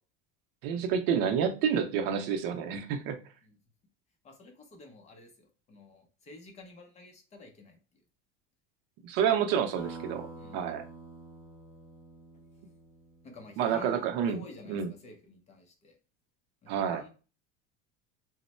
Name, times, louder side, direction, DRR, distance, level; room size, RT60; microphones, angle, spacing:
voice 1, 0.6-3.2 9.0-10.3 10.5-10.8 13.6-14.4 14.7-14.9 16.7-17.0, right 8 dB, 70° right, 0.6 m, -29 dB
voice 2, 4.2-7.8 10.3-10.6 13.2-16.0 16.6-17.1, left 2 dB, 25° left, 0.6 m, -50 dB
sound 1, 9.8-14.0, right 2 dB, 5° right, 0.9 m, -47 dB
3.0 x 2.1 x 4.2 m
cardioid pair, 165°, 29 cm